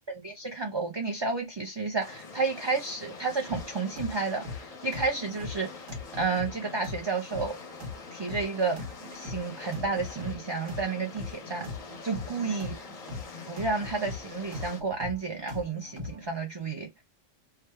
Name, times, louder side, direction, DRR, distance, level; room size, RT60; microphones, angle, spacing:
voice 1, 0.1-5.9 6.2-7.6 8.1-8.8 9.1-11.7 12.0-12.8 13.5-16.9, right 4 dB, 30° right, 0.5 m, -31 dB
sound 1, 2.0-14.8, left 4 dB, 40° left, 0.6 m, -45 dB
sound 2, 3.5-16.3, left 3 dB, 85° right, 1.8 m, -41 dB
3.3 x 2.3 x 4.3 m
omnidirectional pair, 1.3 m